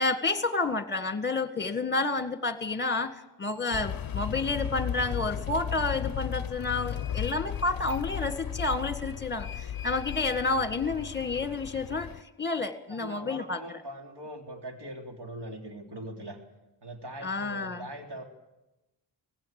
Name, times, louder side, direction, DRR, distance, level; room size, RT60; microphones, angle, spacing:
voice 1, 0.0-12.1 12.4-13.8 17.2-17.8, left 3 dB, 25° left, 9 dB, 1.7 m, -30 dB
sound 1, 3.7-12.2, left 9 dB, 50° left, 0.6 m, -35 dB
voice 2, 12.9-16.4 16.8-18.2, right 1 dB, 60° right, 3 dB, 3.3 m, -41 dB
19.0 x 16.0 x 8.9 m, 1.0 s
wide cardioid pair, 85°, 46 cm